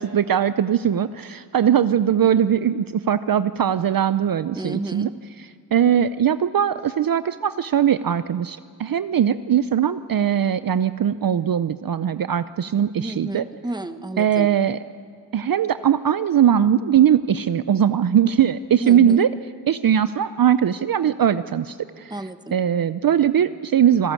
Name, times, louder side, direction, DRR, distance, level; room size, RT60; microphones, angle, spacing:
voice 1, 0.0-5.1 5.4-13.4 14.2-14.8 15.3-19.3 19.7-22.2 22.5-24.1, right 9 dB, 55° right, 13 dB, 0.6 m, -20 dB
voice 2, 4.5-5.1 13.0-14.5 18.8-19.3 22.1-22.6, right 1 dB, 10° right, 10 dB, 1.1 m, -31 dB
26.0 x 12.5 x 8.3 m, 2.2 s
cardioid pair, 70°, 42 cm